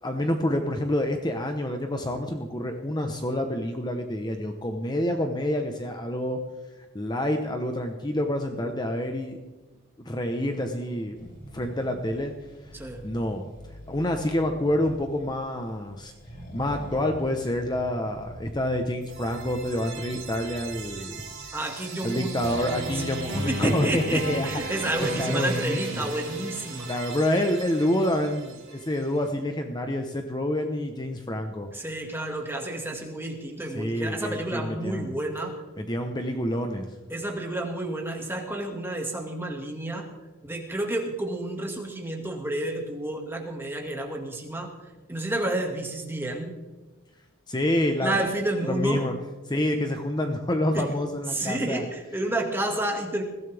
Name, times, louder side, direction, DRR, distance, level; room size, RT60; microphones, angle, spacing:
voice 1, 0.0-6.4 6.9-9.4 10.0-11.2 11.5-12.3 13.0-13.4 13.9-16.1 16.5-21.2 22.0-26.1 26.8-31.7 33.7-35.1 35.8-36.9 47.5-48.3 48.6-49.1 49.5-51.9, left 1 dB, 20° left, 4 dB, 1.0 m, -28 dB
Accelerating revving vroom, 11.2-21.5, equal, 40° left, 5.7 m, -44 dB
voice 2, 12.7-13.0 21.5-22.4 22.9-23.0 23.5-26.9 31.7-35.6 37.1-40.1 40.4-44.7 45.1-46.6 48.0-49.1 50.7-50.9 51.3-53.2, right 1 dB, 10° right, 2 dB, 2.0 m, -30 dB
sound 1, 19.0-28.9, right 2 dB, 60° right, 7.0 m, -36 dB
21.5 x 16.5 x 3.5 m, 1.2 s
head